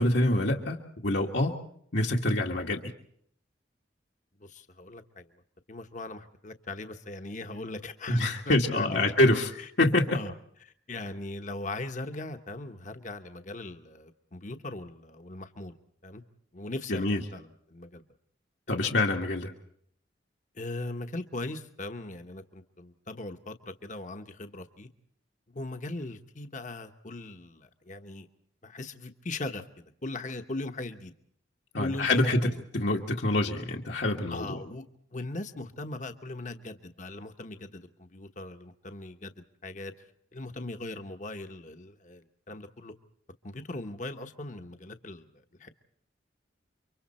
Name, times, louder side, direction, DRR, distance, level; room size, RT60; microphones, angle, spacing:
voice 1, 0.0-1.5 1.9-2.9 8.1-9.5 9.8-10.2 16.9-17.2 18.7-19.5 31.7-34.6, left 1 dB, 70° left, -1 dB, 1.9 m, -26 dB
voice 2, 4.4-5.3 5.7-9.1 9.6-9.7 10.1-10.3 10.6-15.8 16.0-16.2 16.5-18.0 18.7-18.8 20.5-24.9 25.5-28.3 28.6-31.1 31.8-32.1 32.4-32.6 34.3-34.8 35.1-39.9 40.3-42.9 43.4-45.7, left 2 dB, 40° left, 7 dB, 1.1 m, -39 dB
29.5 x 24.5 x 4.3 m, 0.65 s
head